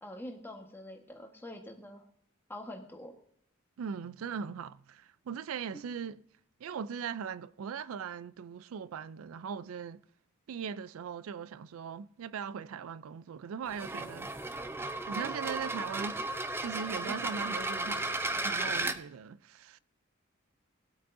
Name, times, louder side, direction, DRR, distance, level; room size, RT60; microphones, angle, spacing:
voice 1, 0.0-2.1 2.5-3.2 5.7-5.8 17.1-17.6, left 1 dB, 10° left, 1.3 m, -45 dB
voice 2, 3.8-6.2 6.6-10.0 10.5-14.3 15.0-16.3 16.6-19.8, right 7 dB, 85° right, 0.4 m, -39 dB
sound 1, 13.7-19.0, right 2 dB, 10° right, 0.5 m, -34 dB
18.5 x 8.3 x 2.6 m
head